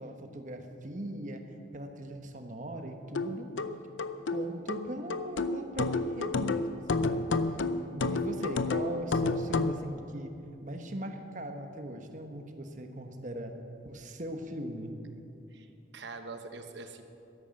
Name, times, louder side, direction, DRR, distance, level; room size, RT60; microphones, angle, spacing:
voice 1, 0.0-3.5 4.3-7.5 7.9-13.6 13.8-15.0, right 1 dB, 40° right, 5 dB, 1.1 m, -40 dB
sound 1, 3.1-9.8, left 3 dB, 80° left, 0.6 m, -30 dB
voice 2, 15.5-17.0, right 3 dB, 70° right, 7 dB, 1.1 m, -44 dB
13.0 x 11.0 x 7.7 m, 2.7 s
head